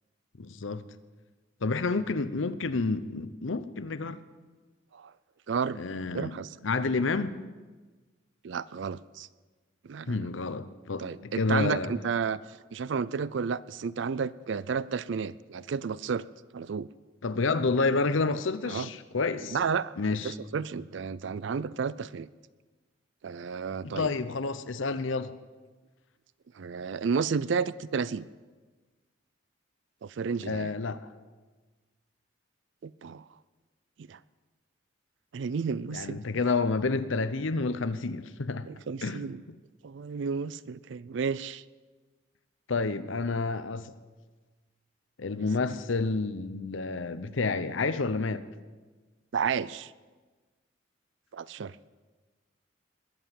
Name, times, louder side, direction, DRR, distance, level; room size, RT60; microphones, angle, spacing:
voice 1, 0.4-0.9 1.6-4.2 5.7-6.4 6.6-7.4 10.1-11.9 17.2-19.6 20.0-20.3 23.8-25.3 30.4-31.0 35.9-38.7 39.0-39.3 42.7-43.9 45.2-48.4, left 3 dB, 80° left, 14 dB, 0.8 m, -29 dB
voice 2, 5.5-5.8 6.1-6.5 8.4-9.3 9.8-10.3 11.0-12.4 12.7-16.2 16.5-16.9 18.7-18.9 19.5-22.3 23.2-24.1 26.6-28.2 30.0-30.7 32.8-33.2 34.0-34.2 35.3-36.2 38.7-39.4 39.8-41.6 49.3-49.9 51.3-51.9, right 6 dB, 65° right, 18 dB, 0.4 m, -32 dB
21.0 x 8.0 x 7.4 m, 1.3 s
head